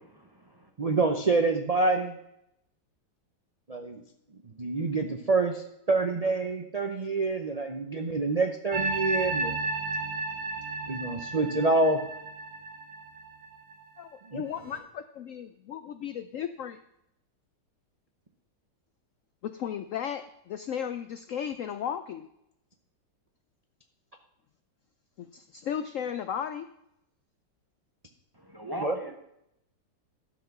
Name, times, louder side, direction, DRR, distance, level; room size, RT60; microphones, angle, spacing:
voice 1, 0.1-0.7 28.3-29.2, equal, 15° right, 3 dB, 0.8 m, -40 dB
voice 2, 0.8-2.2 3.7-4.0 4.4-9.5 10.9-12.0 14.3-14.4 28.8-28.9, right 3 dB, 45° right, 4 dB, 0.4 m, -27 dB
sound 1, 8.7-14.0 14.5-14.8, right 3 dB, 65° right, 2.0 m, -33 dB
voice 3, 14.0-16.8 19.4-22.3 25.2-26.7, left 8 dB, 80° left, 10 dB, 0.7 m, -35 dB
12.0 x 6.2 x 6.0 m, 0.79 s
omnidirectional pair, 1.9 m